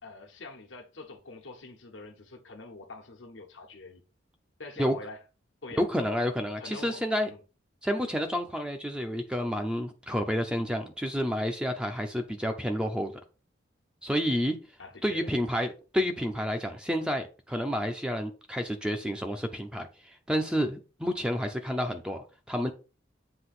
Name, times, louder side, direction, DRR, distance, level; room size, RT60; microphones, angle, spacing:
voice 1, 0.0-4.0 4.6-5.2 5.6-5.8 6.2-7.4 14.8-15.3, left 3 dB, 80° left, 1.4 m, -45 dB
voice 2, 5.8-7.3 7.8-13.1 14.0-14.5 15.0-22.7, equal, 5° right, 0.7 m, -30 dB
7.8 x 3.0 x 5.9 m
head